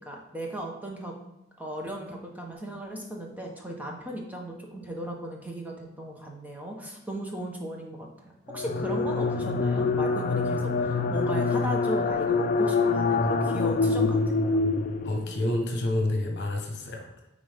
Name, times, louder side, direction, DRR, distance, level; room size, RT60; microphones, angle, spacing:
voice 1, 0.1-1.1 1.6-8.1 8.5-14.6, right 1 dB, 10° right, 0 dB, 0.9 m, -36 dB
sound 1, 8.5-15.4, left 4 dB, 40° left, 0.5 m, -25 dB
voice 2, 15.0-17.1, left 1 dB, 55° left, 2 dB, 1.1 m, -29 dB
9.3 x 3.8 x 3.5 m, 0.88 s
head